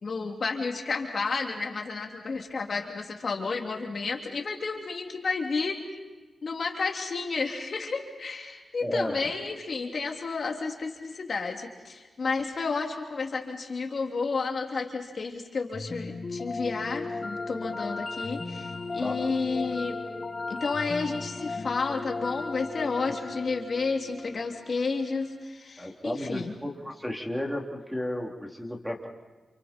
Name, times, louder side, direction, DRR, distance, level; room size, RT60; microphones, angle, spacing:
voice 1, 0.0-5.8 6.4-20.0 20.5-26.5, left 4 dB, 55° left, 2 dB, 3.1 m, -31 dB
voice 2, 8.8-9.2 19.0-19.2 19.6-19.7 23.1-23.2 25.8-29.1, left 1 dB, ahead, 1 dB, 3.3 m, -33 dB
sound 1, 15.7-24.9, left 3 dB, 40° left, 2.1 m, -36 dB
29.5 x 29.0 x 4.5 m, 1.3 s
wide cardioid pair, 95°, 0 cm